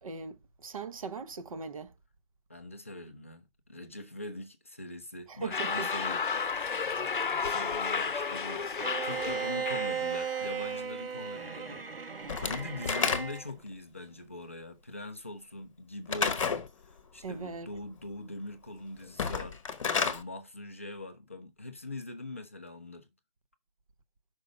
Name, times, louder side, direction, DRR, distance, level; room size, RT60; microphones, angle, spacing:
voice 1, 0.0-1.9 5.3-5.9 6.8-7.6 17.2-17.7, right 5 dB, 35° right, 0.8 m, -40 dB
voice 2, 2.5-6.8 7.2-11.9 12.4-19.6 19.9-23.1, left 2 dB, 15° left, 0.5 m, -42 dB
sound 1, 5.5-10.8, left 5 dB, 60° left, 0.8 m, -33 dB
Bowed string instrument, 8.8-13.5, right 7 dB, 75° right, 1.5 m, -36 dB
Slam / Wood, 12.3-13.6 16.1-16.7 19.1-20.2, left 6 dB, 35° left, 1.0 m, -30 dB
5.6 x 5.2 x 4.8 m
figure-of-eight pair, 150°, 29 cm